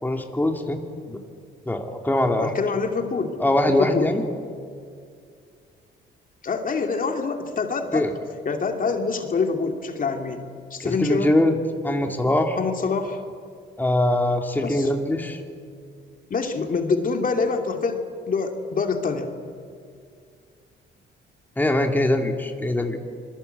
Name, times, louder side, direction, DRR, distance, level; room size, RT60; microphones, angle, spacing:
voice 1, 0.0-0.8 1.1-1.2 1.7-2.5 3.4-4.2 7.9-8.1 10.8-11.6 11.8-12.6 13.8-15.4 21.6-23.0, left 1 dB, 10° left, 3 dB, 2.4 m, -22 dB
voice 2, 2.4-3.4 3.8-4.1 6.4-8.1 8.4-10.4 10.7-11.4 12.6-13.2 14.6-14.9 16.3-19.3, left 4 dB, 45° left, 4 dB, 2.7 m, -25 dB
26.5 x 22.0 x 8.1 m, 2.2 s
cardioid pair, 90°, 20 cm